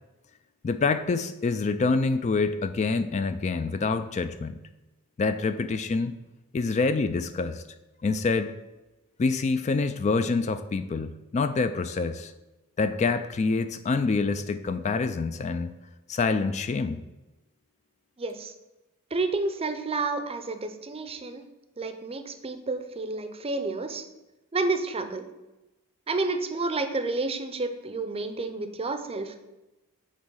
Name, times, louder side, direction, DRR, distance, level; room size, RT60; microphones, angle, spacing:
voice 1, 0.6-4.6 5.2-6.1 6.5-7.6 8.0-8.5 9.2-12.3 12.8-15.7 16.1-17.0, left 4 dB, 30° left, 10 dB, 0.3 m, -26 dB
voice 2, 18.2-18.5 19.1-21.4 21.8-24.0 24.5-25.3 26.1-29.4, right 3 dB, 25° right, 8 dB, 0.6 m, -30 dB
8.2 x 3.1 x 6.2 m, 1.0 s
head